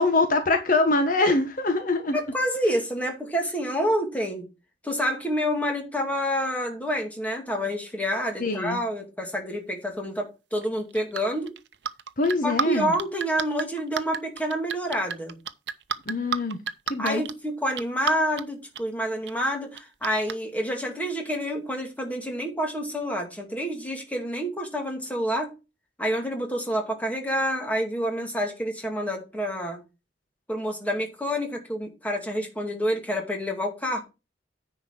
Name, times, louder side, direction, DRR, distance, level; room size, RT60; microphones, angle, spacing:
voice 1, 0.0-2.2 8.4-8.8 12.2-12.9 16.1-16.6 16.9-17.2, left 2 dB, 50° left, 1.2 m, -23 dB
voice 2, 2.1-4.5 4.8-11.5 12.4-15.4 17.0-25.5 26.0-29.8 30.5-34.0, equal, 10° left, 2.3 m, -28 dB
sound 1, 10.5-12.6 12.9-17.3 17.8-18.4 18.7-18.8 19.3-19.4 19.7-20.3, right 6 dB, 75° right, 0.7 m, -30 dB
9.8 x 4.5 x 5.9 m
head